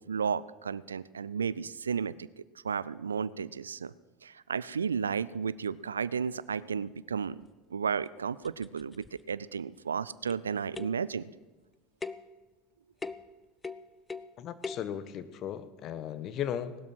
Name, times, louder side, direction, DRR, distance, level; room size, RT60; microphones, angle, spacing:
voice 1, 0.0-2.3 2.6-3.9 4.2-7.4 7.7-11.3, right 6 dB, 85° right, 19 dB, 0.4 m, -33 dB
sound 1, 7.4-7.5 8.1-8.2 8.4-9.3 10.3-10.5 10.7-11.1 12.0-12.3 13.0-13.3 13.6-14.3 14.6-14.9, left 4 dB, 20° left, 0.7 m, -41 dB
voice 2, 14.4-16.8, left 9 dB, 50° left, 13 dB, 1.2 m, -36 dB
18.0 x 12.5 x 6.1 m, 1.2 s
hypercardioid pair, 70°, 0 cm